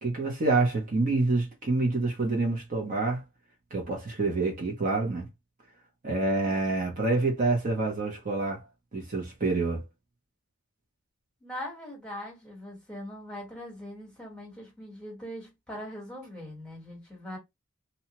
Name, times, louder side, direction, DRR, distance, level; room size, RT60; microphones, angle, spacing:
voice 1, 0.0-3.2 3.7-5.3 6.0-8.6 8.9-9.8, right 3 dB, 40° right, 0.8 m, -27 dB
voice 2, 11.4-17.4, equal, 5° left, 1.3 m, -41 dB
2.8 x 2.3 x 3.0 m
head